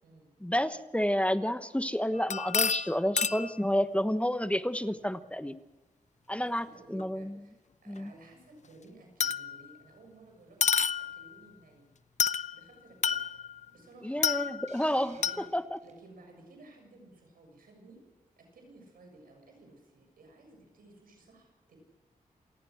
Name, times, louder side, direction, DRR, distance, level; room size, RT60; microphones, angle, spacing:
voice 1, 0.4-5.6 6.3-7.3 7.9-8.1 14.0-15.2 15.5-15.8, equal, 10° left, 11 dB, 1.1 m, -30 dB
sound 1, 2.1-3.6 7.0-7.1 9.2-9.7 10.6-11.3 12.2-12.6 13.0-13.6 14.2-14.8 15.2-15.5, left 6 dB, 55° left, 0.7 m, -29 dB
voice 2, 6.4-10.8 11.1-11.9 12.5-13.2 13.7-14.2 15.1-15.4 15.8-18.0 18.4-21.8, right 2 dB, 90° right, 3 dB, 7.1 m, -55 dB
Hiss, 14.7-16.0, right 4 dB, 55° right, 4.1 m, -58 dB
27.0 x 18.0 x 6.4 m, 1.1 s
cardioid pair, 50°, 14 cm